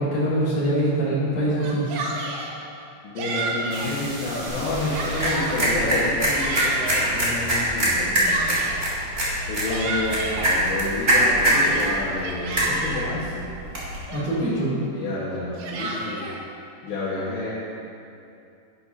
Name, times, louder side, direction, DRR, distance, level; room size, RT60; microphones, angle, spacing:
voice 1, 0.0-1.9 14.1-14.7, right 1 dB, 40° left, -9 dB, 3.3 m, -23 dB
Yell, 1.5-2.5 3.2-4.0 4.5-5.6 6.1-7.2 7.9-8.9 9.4-10.5 11.0-13.1 13.7-13.8 14.1-14.6 15.3-16.4, right 3 dB, 75° right, 2.9 m, -32 dB
voice 2, 3.0-8.6 9.5-13.5 14.9-16.3 16.8-17.5, left 2 dB, 75° left, -10 dB, 3.6 m, -29 dB
sound 1, 3.7-8.4, right 2 dB, 60° right, 3.4 m, -38 dB
sound 2, 4.5-14.0, right 1 dB, 25° right, 1.3 m, -24 dB
11.5 x 11.0 x 2.8 m, 2.6 s
omnidirectional pair, 5.2 m